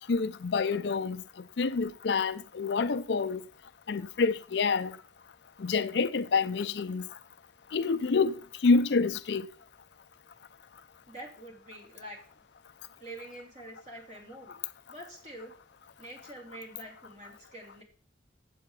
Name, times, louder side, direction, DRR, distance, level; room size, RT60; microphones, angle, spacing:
voice 1, 0.1-1.2 1.6-3.4 3.9-5.0 5.6-7.1 7.7-9.5, left 4 dB, 65° left, 0.5 m, -27 dB
voice 2, 11.1-12.2 13.0-14.6 14.9-15.5 16.0-17.8, right 1 dB, 40° right, 3.1 m, -46 dB
8.2 x 7.8 x 4.8 m
head